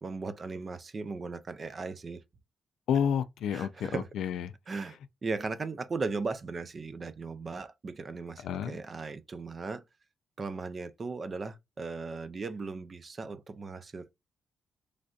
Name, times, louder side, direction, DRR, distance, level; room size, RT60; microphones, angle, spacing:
voice 1, 0.0-2.2 3.5-4.1 4.7-9.8 10.4-14.1, right 4 dB, 40° right, 0.5 m, -37 dB
voice 2, 2.9-4.5 8.4-8.8, left 8 dB, 80° left, 0.3 m, -30 dB
3.2 x 2.5 x 2.4 m
cardioid pair, 70°, 0 cm